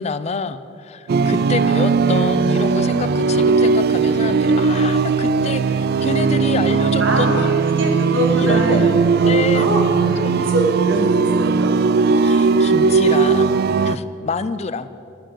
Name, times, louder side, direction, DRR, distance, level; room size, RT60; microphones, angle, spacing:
voice 1, 0.0-7.5 8.3-8.9 9.2-9.7 10.0-10.5 12.2-13.6 13.8-14.9, left 4 dB, 35° left, 13 dB, 0.4 m, -27 dB
sound 1, 1.1-14.0, right 4 dB, 55° right, 0.3 m, -17 dB
voice 2, 7.0-9.8 10.2-11.8, right 1 dB, 80° right, 1 dB, 2.1 m, -23 dB
11.5 x 7.5 x 8.4 m, 2.6 s
head